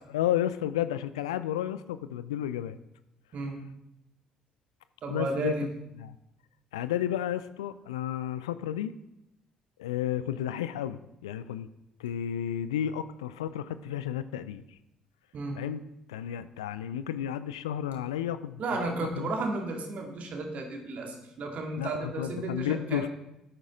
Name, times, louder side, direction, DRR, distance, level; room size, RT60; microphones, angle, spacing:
voice 1, 0.1-2.8 5.1-5.5 6.0-6.2 6.7-8.9 9.8-11.7 12.0-14.6 15.6-15.8 16.1-19.3 21.8-23.1, left 11 dB, 75° left, 14 dB, 0.4 m, -32 dB
voice 2, 5.0-5.7 15.3-15.6 18.6-23.1, right 3 dB, 50° right, 2 dB, 2.3 m, -33 dB
12.5 x 8.8 x 3.8 m, 0.88 s
figure-of-eight pair, 45°, 3 cm